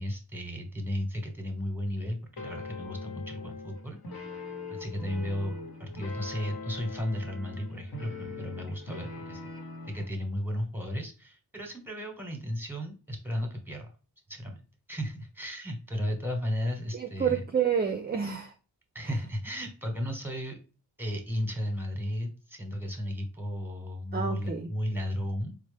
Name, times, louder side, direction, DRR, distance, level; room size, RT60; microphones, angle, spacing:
voice 1, 0.0-4.3 4.7-9.4 9.9-13.9 14.3-14.6 14.9-17.4 18.9-20.6 21.0-25.6, equal, 5° right, 1.0 m, -34 dB
sound 1, 2.4-10.1, left 3 dB, 75° left, 1.1 m, -41 dB
voice 2, 16.9-18.5 24.1-24.7, right 7 dB, 25° right, 0.4 m, -29 dB
4.1 x 2.0 x 3.2 m
wide cardioid pair, 60°, 38 cm